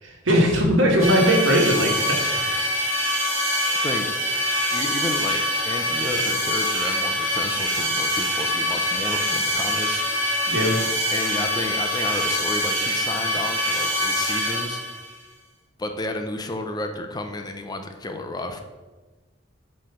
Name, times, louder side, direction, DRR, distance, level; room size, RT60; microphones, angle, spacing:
voice 1, 0.0-2.8 10.4-10.8, equal, 70° right, -1 dB, 1.7 m, -20 dB
sound 1, 1.0-15.1, equal, 15° right, 2.4 m, -24 dB
voice 2, 4.7-10.0 11.1-14.8 15.8-18.6, left 2 dB, 20° left, 6 dB, 0.5 m, -31 dB
7.7 x 3.3 x 5.6 m, 1.3 s
head